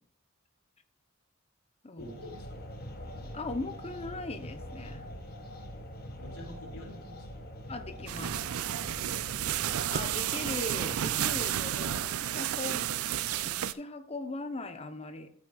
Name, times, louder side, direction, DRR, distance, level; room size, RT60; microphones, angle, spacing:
voice 1, 2.0-2.7 6.1-7.5 8.7-9.3, equal, 85° left, -1 dB, 2.9 m, -48 dB
sound 1, 2.0-11.9, equal, 45° left, 1.4 m, -44 dB
voice 2, 3.3-5.1 7.7-8.4 9.9-12.9 13.4-15.3, left 2 dB, 30° left, 9 dB, 0.8 m, -39 dB
sound 2, 8.1-13.7, right 11 dB, 80° right, 0.4 m, -31 dB
13.5 x 6.1 x 2.4 m, 0.70 s
head